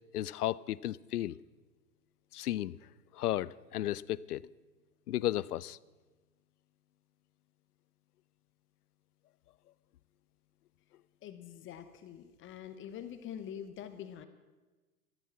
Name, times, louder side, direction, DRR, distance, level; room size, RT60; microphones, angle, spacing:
voice 1, 0.1-1.4 2.3-2.8 3.1-4.4 5.1-5.8, left 13 dB, 80° left, 21 dB, 0.6 m, -34 dB
voice 2, 11.2-14.3, left 9 dB, 25° left, 10 dB, 0.9 m, -45 dB
13.5 x 13.0 x 5.9 m, 1.2 s
hypercardioid pair, 110°, 45 cm